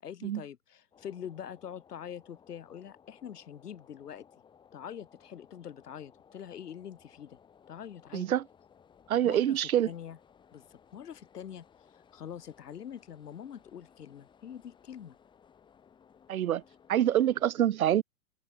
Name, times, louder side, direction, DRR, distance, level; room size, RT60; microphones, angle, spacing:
voice 1, 0.0-4.3 4.7-7.4 7.7-8.3 9.2-9.6 9.9-10.2 10.5-11.6 11.9-15.2, left 9 dB, 80° left, 7.4 m, -44 dB
sound 1, 0.9-17.5, left 7 dB, 10° left, 4.2 m, -61 dB
voice 2, 8.1-8.4 9.1-9.9 16.3-16.6 16.9-18.0, right 11 dB, 65° right, 2.2 m, -26 dB
open air
hypercardioid pair, 170°, 46 cm